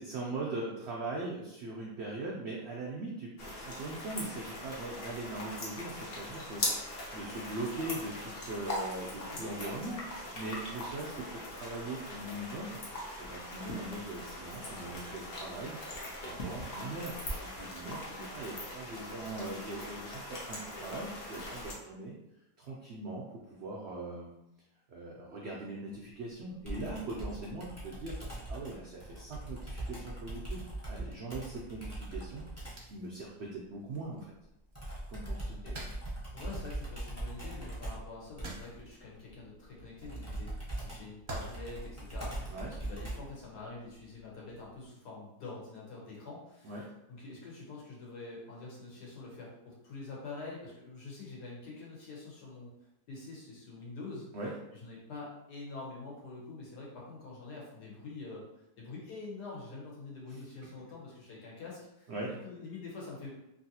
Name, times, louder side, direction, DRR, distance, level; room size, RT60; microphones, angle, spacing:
voice 1, 0.0-22.1 22.6-24.3 24.9-34.3 35.1-35.6 42.5-42.7 46.6-46.8 54.3-54.5 60.3-60.7 62.1-62.3, right 2 dB, 90° right, -3 dB, 0.5 m, -41 dB
sound 1, 3.4-21.7, left 1 dB, 55° left, 0.7 m, -41 dB
Computer keyboard, 26.7-32.9 34.7-43.4, right 1 dB, 20° left, 0.4 m, -41 dB
sound 2, 28.1-28.2 29.7-29.8 30.5-30.7 32.8-33.1 33.8-34.3 34.7-36.3 37.3-37.6 38.2-39.0 40.0-40.3 41.1-41.9 42.8-43.1 43.6-43.8, right 2 dB, 50° right, 0.6 m, -48 dB
voice 2, 36.3-40.5 40.8-46.8 47.1-52.7 53.1-54.3 54.8-63.4, left 3 dB, 85° left, -4 dB, 1.5 m, -46 dB
3.1 x 2.6 x 2.7 m, 0.87 s
omnidirectional pair, 1.7 m